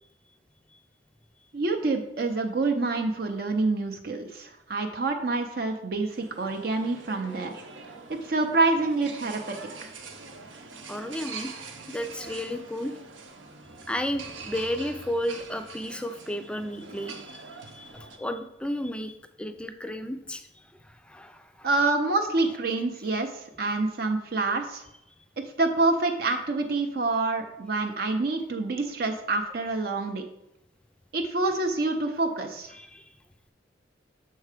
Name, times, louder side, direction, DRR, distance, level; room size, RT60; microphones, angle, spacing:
voice 1, 1.5-7.6 8.1-9.9 21.6-24.8 25.6-30.2 31.1-32.7, right 3 dB, 55° right, 4 dB, 0.5 m, -27 dB
sound 1, 6.1-18.2, right 4 dB, 85° right, 0.8 m, -44 dB
voice 2, 10.9-11.5 11.9-13.0 13.9-20.5 20.8-21.7 32.7-33.0, equal, 5° left, 8 dB, 0.4 m, -33 dB
6.5 x 4.6 x 4.9 m, 0.84 s
head